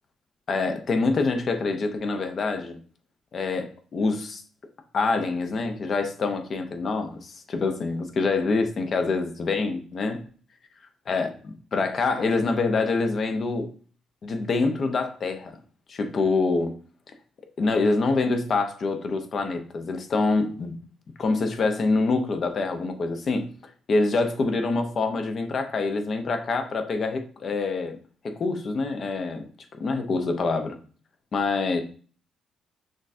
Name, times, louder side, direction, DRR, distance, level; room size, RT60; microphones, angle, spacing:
voice 1, 0.5-2.8 3.3-4.4 4.9-10.2 11.1-11.3 11.7-13.7 14.2-15.6 15.9-16.8 17.6-20.8 21.2-23.5 23.9-28.0 28.2-30.8 31.3-31.8, left 3 dB, 50° left, 0.6 m, -25 dB
6.2 x 2.4 x 2.6 m
cardioid pair, 90°, 0 cm